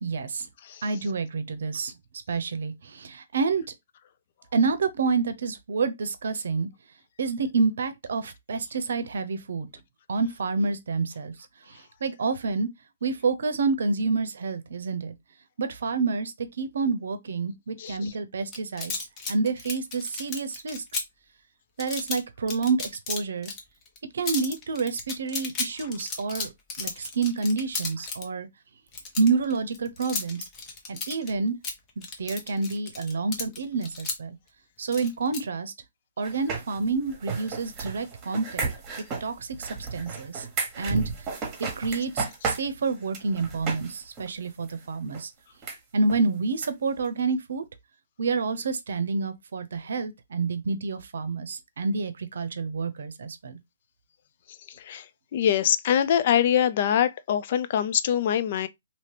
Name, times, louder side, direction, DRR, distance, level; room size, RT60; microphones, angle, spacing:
voice 1, 0.0-0.5 0.8-1.9 2.3-3.6 4.5-6.7 7.2-9.7 10.1-11.3 11.7-12.7 13.0-15.1 15.6-18.9 19.3-21.0 21.8-23.5 24.1-26.5 26.8-28.5 29.2-30.5 30.9-31.6 32.0-34.4 34.8-35.7 36.2-38.7 39.2-40.5 40.8-41.0 41.6-45.3 45.9-47.6 48.2-53.6, right 4 dB, 75° right, 0.6 m, -28 dB
sound 1, 18.5-21.0 21.8-22.2 22.5-23.6 23.9-24.0 24.3-28.2 28.9-31.3 31.6-34.2 34.9-35.4, left 4 dB, 25° left, 0.9 m, -33 dB
sound 2, 36.2-43.9 44.2-44.3 44.7-44.8 45.1-45.2 45.6-45.8 46.1-46.2 46.6-46.7 47.0-47.1, right 5 dB, 20° right, 1.2 m, -33 dB
voice 2, 55.3-58.7, left 9 dB, 45° left, 0.3 m, -23 dB
2.9 x 2.8 x 3.2 m
hypercardioid pair, 150°, 0 cm